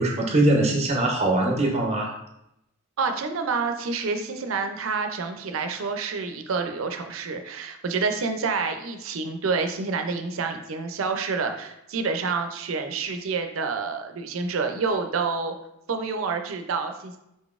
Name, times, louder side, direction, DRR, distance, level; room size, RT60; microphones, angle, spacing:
voice 1, 0.0-2.1, right 1 dB, 30° right, 0 dB, 0.6 m, -22 dB
voice 2, 3.0-15.5 15.9-17.2, right 4 dB, 80° right, 6 dB, 0.5 m, -28 dB
4.0 x 3.7 x 2.4 m, 0.83 s
head